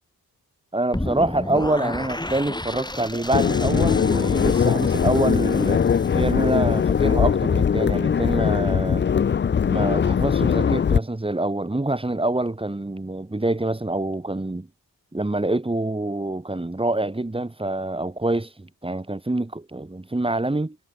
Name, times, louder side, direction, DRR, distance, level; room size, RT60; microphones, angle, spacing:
voice 1, 0.7-5.8 6.1-9.0 9.7-14.7 15.1-20.8, right 2 dB, 15° right, 1.5 m, -26 dB
sound 1, 0.9-7.0, left 1 dB, 10° left, 3.6 m, -33 dB
sound 2, 3.3-11.0, left 7 dB, 30° left, 0.5 m, -21 dB
cardioid pair, 50°, 37 cm